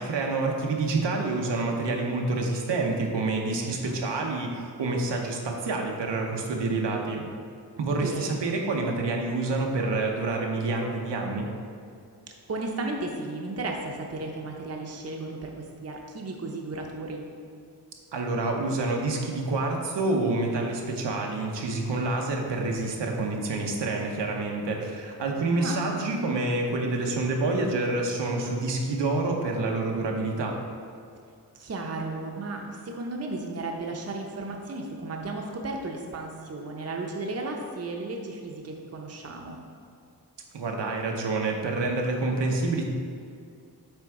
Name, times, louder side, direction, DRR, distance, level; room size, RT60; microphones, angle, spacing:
voice 1, 0.0-7.3 7.8-11.5 18.1-30.6 40.5-42.8, right 3 dB, 90° right, 1 dB, 0.9 m, -28 dB
voice 2, 7.9-8.4 12.5-17.2 25.5-26.2 31.5-39.6, right 2 dB, 35° right, 1 dB, 0.7 m, -34 dB
8.0 x 3.5 x 4.7 m, 2.3 s
wide cardioid pair, 135°, 41 cm